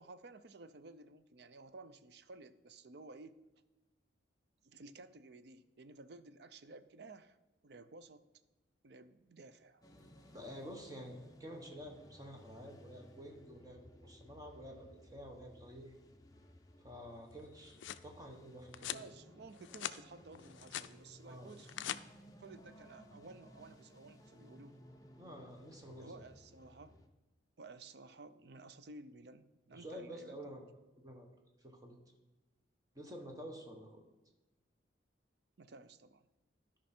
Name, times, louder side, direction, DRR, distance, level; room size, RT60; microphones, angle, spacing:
voice 1, 0.0-3.4 4.6-7.4 7.6-8.2 8.8-9.8 17.3-17.5 18.9-21.8 22.4-24.8 26.0-27.0 27.6-30.4 35.6-36.2, right 3 dB, 60° right, 12 dB, 0.5 m, -54 dB
sound 1, 9.8-27.1, left 1 dB, 20° left, 0.7 m, -59 dB
voice 2, 10.3-15.9 16.8-19.1 21.2-21.5 25.2-26.2 29.7-30.7 31.0-31.3 31.6-32.0 32.9-34.0, equal, 20° right, 2 dB, 1.2 m, -50 dB
sound 2, 17.4-18.1 18.7-19.1 19.5-20.0 20.4-20.9 21.5-22.0, left 11 dB, 75° left, 0.4 m, -43 dB
12.5 x 5.3 x 4.3 m, 1.1 s
head